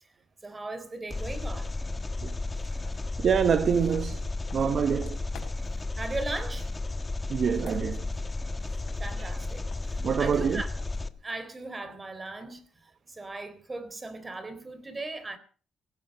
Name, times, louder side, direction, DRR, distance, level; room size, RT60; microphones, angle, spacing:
voice 1, 0.4-1.7 6.0-6.7 9.0-10.7 11.2-12.6 13.1-15.4, right 2 dB, 25° right, 3.6 m, -38 dB
Engine, 1.1-11.1, left 2 dB, 20° left, 1.3 m, -33 dB
sound 1, 2.3-2.4 2.8-5.8 7.4-9.4 9.7-12.8, left 7 dB, 75° left, 5.0 m, -53 dB
voice 2, 2.6-4.3 4.5-5.2 7.3-8.1 9.2-9.3 10.0-10.6, right 7 dB, 55° right, 0.9 m, -26 dB
17.5 x 15.5 x 5.4 m
cardioid pair, 90°, 0 cm